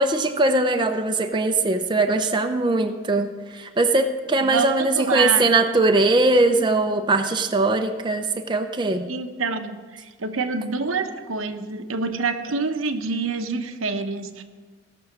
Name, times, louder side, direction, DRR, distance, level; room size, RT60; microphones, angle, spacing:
voice 1, 0.0-9.1, right 2 dB, 20° right, 5 dB, 0.6 m, -21 dB
voice 2, 4.4-5.5 9.1-14.4, right 4 dB, 90° right, 7 dB, 0.9 m, -27 dB
16.0 x 6.3 x 6.1 m, 1.4 s
head